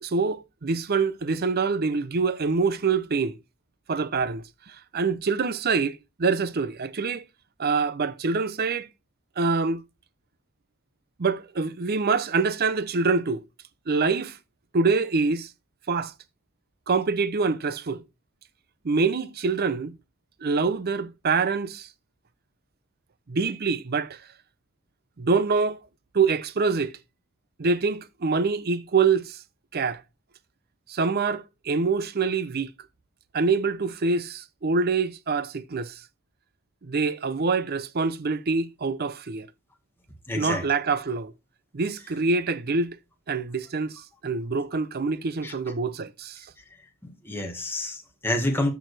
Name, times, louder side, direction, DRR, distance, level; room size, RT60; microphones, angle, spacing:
voice 1, 0.0-3.4 3.9-7.2 7.6-8.9 9.4-9.8 11.2-13.4 13.9-14.4 14.7-15.5 15.9-16.1 16.9-18.0 18.8-20.0 20.4-21.9 23.3-24.2 25.2-25.8 26.1-27.0 27.6-29.4 29.7-30.0 30.9-32.7 33.3-36.0 36.8-39.5 40.3-41.3 41.7-43.0 43.3-46.5, right 4 dB, 45° right, 0.6 m, -25 dB
voice 2, 40.3-40.6 45.4-45.5 47.2-48.7, left 1 dB, 10° left, 1.7 m, -28 dB
13.5 x 4.7 x 3.3 m
head